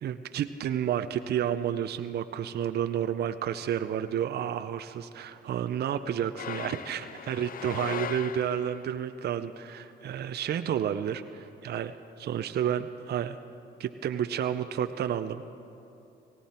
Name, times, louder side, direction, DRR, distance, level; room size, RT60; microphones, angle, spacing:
voice 1, 0.0-13.4 13.8-15.4, right 9 dB, 55° right, 10 dB, 0.5 m, -31 dB
sound 1, 6.4-9.0, left 9 dB, 45° left, 0.4 m, -38 dB
18.5 x 17.0 x 4.3 m, 2.7 s
cardioid pair, 90°, 20 cm